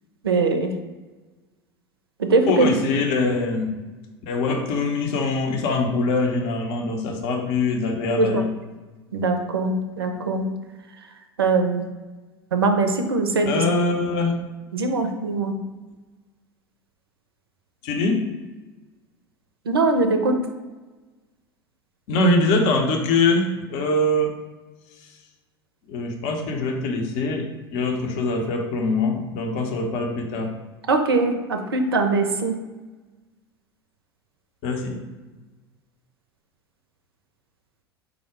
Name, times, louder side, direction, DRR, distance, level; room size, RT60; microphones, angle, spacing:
voice 1, 0.2-0.7 2.3-2.7 8.2-8.4 9.1-10.5 11.4-11.9 12.5-13.6 14.7-15.5 19.7-20.4 30.9-32.5, right 3 dB, 75° right, 6 dB, 0.5 m, -21 dB
voice 2, 2.5-3.7 4.3-8.6 13.4-14.5 17.8-18.2 22.1-24.3 25.9-30.5 34.6-35.0, left 2 dB, 50° left, 2 dB, 0.6 m, -23 dB
4.7 x 2.1 x 4.6 m, 1.2 s
figure-of-eight pair, 75°, 13 cm